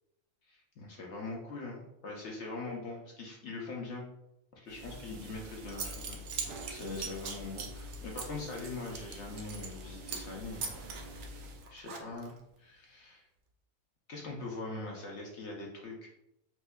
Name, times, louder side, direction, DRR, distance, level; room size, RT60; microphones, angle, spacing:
voice 1, 0.5-4.1 4.5-6.2 6.7-10.6 10.9-13.3 14.1-16.1, left 3 dB, 60° left, -1 dB, 0.7 m, -42 dB
sound 1, 4.7-11.7, equal, 85° right, 1.1 m, -46 dB
Zipper (clothing) / Coin (dropping), 5.3-5.4 5.7-9.8 10.1-10.3 10.6-12.4, right 6 dB, 65° right, 0.7 m, -41 dB
4.3 x 2.6 x 2.3 m, 0.85 s
omnidirectional pair, 1.6 m